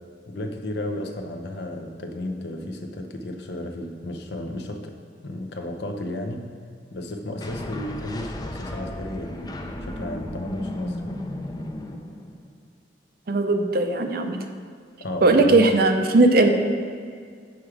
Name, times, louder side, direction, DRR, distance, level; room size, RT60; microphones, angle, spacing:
voice 1, 0.3-4.9 5.2-6.5 6.9-9.3 9.8-11.1 15.0-15.7, left 1 dB, 65° left, 4 dB, 0.7 m, -33 dB
sound 1, 7.4-12.6, left 1 dB, 20° left, 0.5 m, -34 dB
voice 2, 13.3-14.4 15.2-16.5, right 2 dB, 55° right, 6 dB, 0.6 m, -18 dB
7.2 x 4.8 x 4.8 m, 2.1 s
head